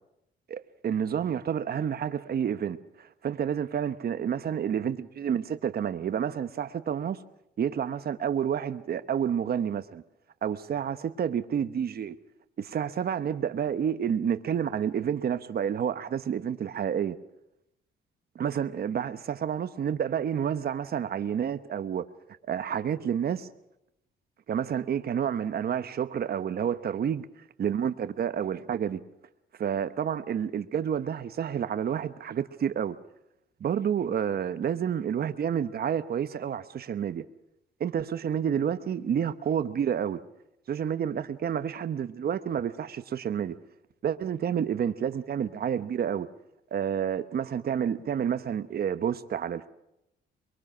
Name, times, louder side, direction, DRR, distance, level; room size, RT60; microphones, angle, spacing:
voice 1, 0.5-7.2 7.6-10.0 10.4-12.1 12.6-17.2 18.3-22.1 22.5-23.5 24.5-27.3 27.6-29.0 29.6-33.0 33.6-37.2 37.8-40.2 40.7-43.6 44.0-46.3 46.7-49.7, right 8 dB, 50° right, 1.0 m, -29 dB
23.5 x 22.5 x 6.2 m
cardioid pair, 90°, 20 cm